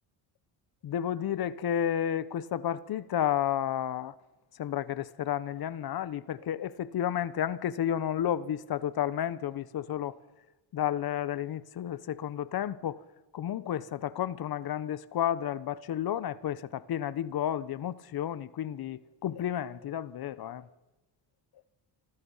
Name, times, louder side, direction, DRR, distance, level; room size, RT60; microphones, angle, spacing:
voice 1, 0.8-4.1 4.5-10.2 10.7-13.0 13.3-20.7, left 10 dB, 55° left, 1.0 m, -32 dB
27.0 x 26.0 x 5.6 m
cardioid pair, 120°, 43 cm